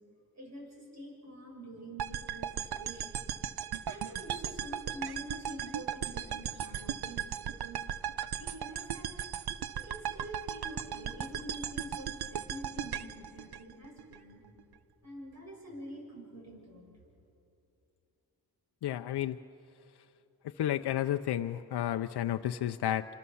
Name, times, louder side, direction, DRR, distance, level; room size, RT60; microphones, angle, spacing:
voice 1, 0.3-3.3 3.8-7.8 8.4-9.1 9.7-14.4 15.0-16.9, equal, 45° right, 0 dB, 6.9 m, -46 dB
sound 1, 2.0-14.2, right 9 dB, 75° right, 0.8 m, -37 dB
voice 2, 18.8-19.4 20.4-23.1, left 12 dB, 90° left, 7 dB, 0.6 m, -32 dB
27.5 x 26.5 x 7.1 m, 2.8 s
cardioid pair, 75°, 38 cm